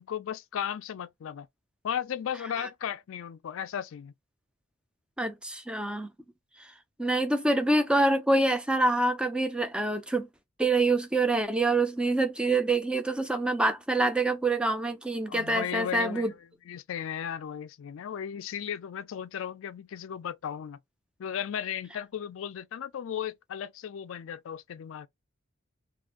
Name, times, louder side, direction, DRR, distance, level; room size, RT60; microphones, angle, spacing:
voice 1, 0.0-1.5 1.8-4.1 15.3-16.4 16.7-20.8 21.2-25.1, left 9 dB, 65° left, 0.3 m, -35 dB
voice 2, 5.2-6.1 7.0-10.3 10.6-16.3, right 2 dB, 5° right, 0.4 m, -26 dB
2.5 x 2.4 x 3.6 m
head